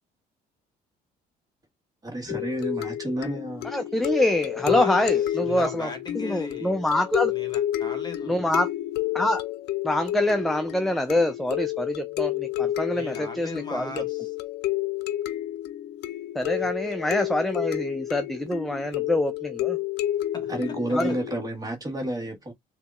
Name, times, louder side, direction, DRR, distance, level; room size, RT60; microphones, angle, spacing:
voice 1, 2.0-3.7 20.5-22.5, right 1 dB, 20° right, 1.6 m, -30 dB
sound 1, 2.3-21.5, left 13 dB, 80° left, 0.5 m, -30 dB
voice 2, 3.6-5.9 6.2-7.3 8.3-8.7 9.1-9.4 9.8-13.9 16.4-19.8 20.9-21.2, left 1 dB, ahead, 0.4 m, -25 dB
voice 3, 4.6-5.1 5.4-6.9 7.2-8.5 12.9-14.3 16.6-16.7 20.3-20.7, left 2 dB, 25° left, 1.5 m, -39 dB
6.7 x 2.7 x 2.4 m
cardioid pair, 110°, 17 cm